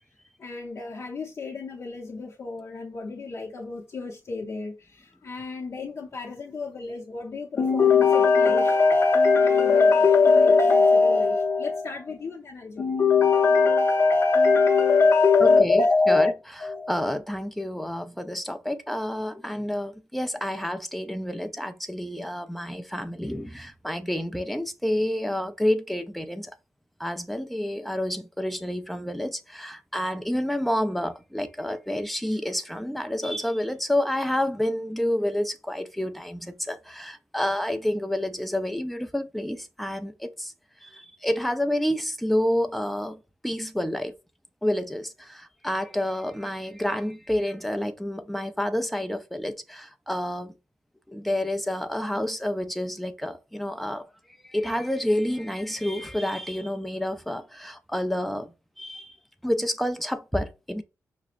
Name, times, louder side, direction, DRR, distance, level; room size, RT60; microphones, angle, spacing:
voice 1, 0.4-16.3 16.6-17.0, left 4 dB, 55° left, 0.7 m, -22 dB
voice 2, 15.4-16.3 16.9-26.5 27.0-40.5 40.8-44.1 44.6-50.5 51.1-54.0 54.5-58.5 58.8-59.1 59.4-60.8, left 1 dB, ahead, 0.4 m, -29 dB
5.8 x 2.1 x 2.4 m
wide cardioid pair, 125°, 6 cm